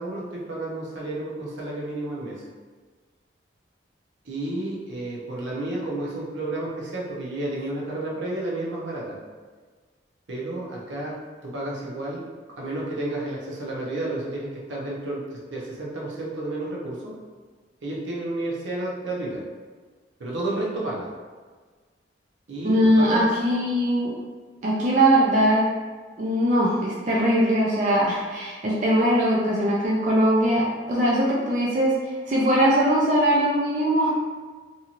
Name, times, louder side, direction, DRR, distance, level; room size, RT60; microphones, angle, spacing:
voice 1, 0.0-2.4 4.2-9.2 10.3-12.3 12.6-17.1 17.8-19.4 20.2-21.1 22.5-23.3, right 2 dB, 80° right, -4 dB, 0.7 m, -31 dB
voice 2, 22.6-24.1 24.6-25.7 26.2-32.0 32.3-34.1, equal, 40° right, -5 dB, 0.4 m, -21 dB
2.9 x 2.7 x 2.5 m, 1.5 s
head